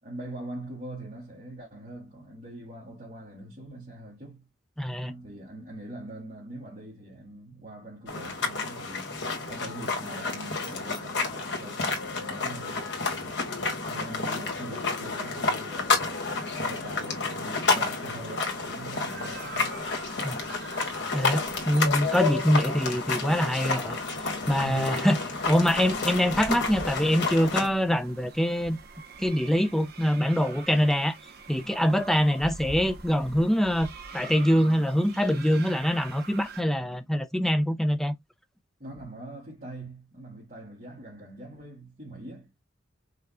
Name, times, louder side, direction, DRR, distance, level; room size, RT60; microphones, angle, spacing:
voice 1, 0.0-4.5 5.0-9.2 9.5-19.7 24.4-25.1 38.8-42.5, right 1 dB, 40° right, 2.3 m, -43 dB
voice 2, 4.8-5.1 20.2-20.4 21.1-24.0 24.5-25.2 25.5-28.8 29.2-31.2 31.5-33.9 34.1-38.1, equal, ahead, 0.5 m, -24 dB
sound 1, 8.1-27.7, left 4 dB, 65° left, 1.5 m, -30 dB
sound 2, 18.4-36.6, right 4 dB, 60° right, 0.9 m, -45 dB
5.5 x 2.3 x 3.6 m
head